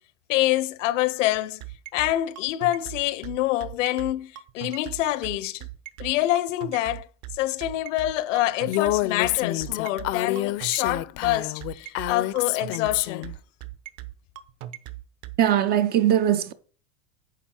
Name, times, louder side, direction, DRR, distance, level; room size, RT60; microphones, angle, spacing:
voice 1, 0.3-1.6 1.9-5.7 6.0-7.1 7.3-13.3, left 15 dB, 70° left, 0.8 m, -26 dB
sound 1, 1.3-15.4, right 15 dB, 50° right, 1.0 m, -38 dB
Female speech woman speaking, 8.7-13.3, left 16 dB, 40° left, 0.5 m, -27 dB
voice 2, 15.4-16.5, right 11 dB, 25° right, 0.4 m, -20 dB
9.1 x 5.5 x 4.3 m
supercardioid pair, 130°, 39 cm